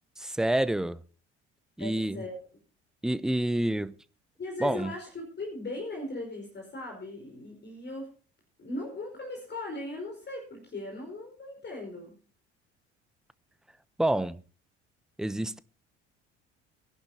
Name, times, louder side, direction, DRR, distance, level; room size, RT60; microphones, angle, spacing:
voice 1, 0.2-1.0 1.8-2.2 3.0-3.9 4.6-4.9 14.0-14.4 15.2-15.6, right 1 dB, ahead, 0.6 m, -28 dB
voice 2, 1.8-2.4 4.4-8.1 8.6-12.2, left 2 dB, 30° left, 5.2 m, -38 dB
22.0 x 11.5 x 2.8 m
figure-of-eight pair, 60°, 34 cm